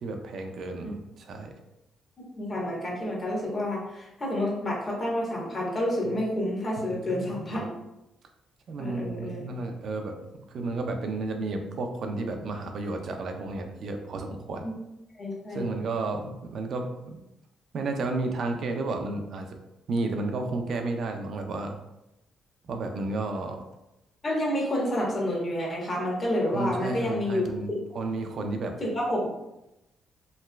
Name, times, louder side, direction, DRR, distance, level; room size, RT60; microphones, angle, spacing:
voice 1, 0.0-1.5 6.0-6.1 6.8-7.7 8.7-14.6 15.5-17.2 17.7-19.5 19.9-21.8 22.7-23.6 26.5-28.8, right 3 dB, 60° right, 4 dB, 0.4 m, -32 dB
voice 2, 2.2-7.7 8.8-9.5 14.6-14.7 15.2-15.7 24.2-27.8 28.8-29.3, left 1 dB, 35° left, -3 dB, 1.1 m, -29 dB
3.2 x 2.8 x 2.2 m, 0.91 s
cardioid pair, 90°, 0 cm